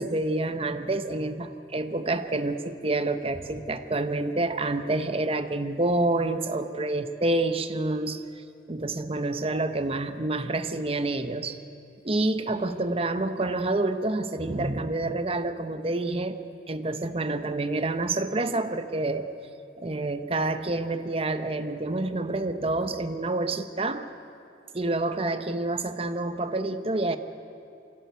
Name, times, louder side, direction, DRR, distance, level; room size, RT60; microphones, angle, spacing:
voice 1, 0.0-8.3 8.7-11.6 12.0-16.4 16.7-19.3 19.8-24.1 24.7-27.2, right 2 dB, 35° right, 9 dB, 0.9 m, -28 dB
24.0 x 16.5 x 8.2 m, 2.7 s
head